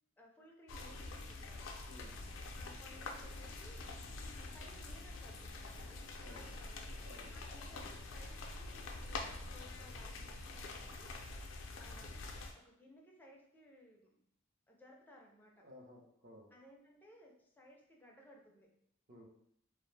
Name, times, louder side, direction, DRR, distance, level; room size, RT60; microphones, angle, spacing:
voice 1, 0.2-1.7 2.6-4.0 4.4-7.1 7.3-11.1 11.7-12.3 12.5-14.2 14.7-15.7 16.5-18.7, left 1 dB, 10° left, -1 dB, 0.4 m, -61 dB
sound 1, 0.7-12.5, left 2 dB, 85° left, 0.4 m, -46 dB
voice 2, 1.9-2.2 6.2-6.5 7.0-7.3 15.6-16.5 19.1-19.3, left 1 dB, 45° right, 0 dB, 0.6 m, -56 dB
2.4 x 2.0 x 3.2 m, 0.70 s
head